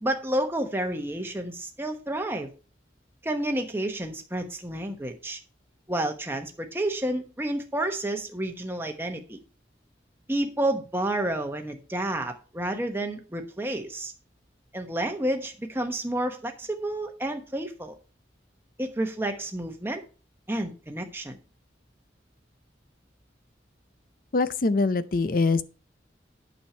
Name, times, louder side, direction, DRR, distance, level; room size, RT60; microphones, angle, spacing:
voice 1, 0.0-2.5 3.2-5.4 5.9-9.4 10.3-14.1 14.7-18.0 18.8-20.0 20.5-21.4, right 1 dB, 10° right, 1.0 m, -30 dB
voice 2, 24.3-25.6, left 3 dB, 50° left, 0.5 m, -23 dB
8.7 x 6.4 x 4.4 m
head